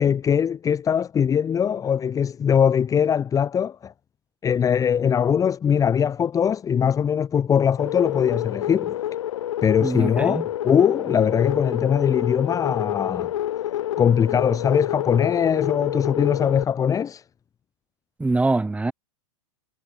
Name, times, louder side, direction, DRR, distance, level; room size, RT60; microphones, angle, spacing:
voice 1, 0.0-3.9 4.4-9.0 9.6-13.3 14.0-17.2, left 8 dB, 20° left, 1.8 m, -21 dB
sound 1, 7.8-16.6, left 12 dB, 70° left, 4.0 m, -28 dB
voice 2, 9.8-10.5 18.2-18.9, right 3 dB, 10° right, 7.9 m, -23 dB
hypercardioid pair, 120°, 17 cm